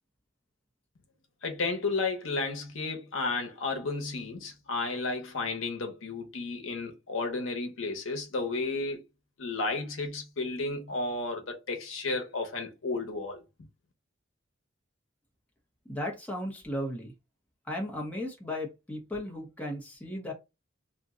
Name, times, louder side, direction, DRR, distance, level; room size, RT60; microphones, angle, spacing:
voice 1, 1.4-9.0 9.4-13.4, left 3 dB, 80° left, 0.8 m, -32 dB
voice 2, 15.9-17.1 17.7-20.3, left 1 dB, 5° left, 0.7 m, -35 dB
2.6 x 2.1 x 3.6 m
head